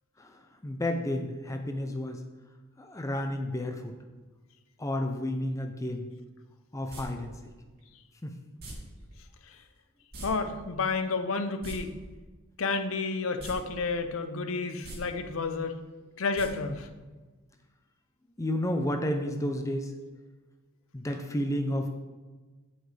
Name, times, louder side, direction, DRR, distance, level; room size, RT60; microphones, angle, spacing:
voice 1, 0.2-2.2 2.8-3.9 4.8-6.1 6.7-7.4 8.2-8.3 18.4-19.9 20.9-21.9, left 1 dB, 15° left, 5 dB, 0.5 m, -31 dB
sound 1, 6.9-7.0 8.6-8.7 10.1-10.3 10.5-10.6 11.5-11.7 13.4-13.5 13.9-14.0 14.7-15.0 16.3-16.5 16.8-16.9, right 1 dB, 45° right, 2.6 m, -41 dB
voice 2, 10.2-11.9 12.6-15.8 16.2-16.9, left 4 dB, 65° left, 8 dB, 0.6 m, -30 dB
8.9 x 7.9 x 3.3 m, 1.3 s
head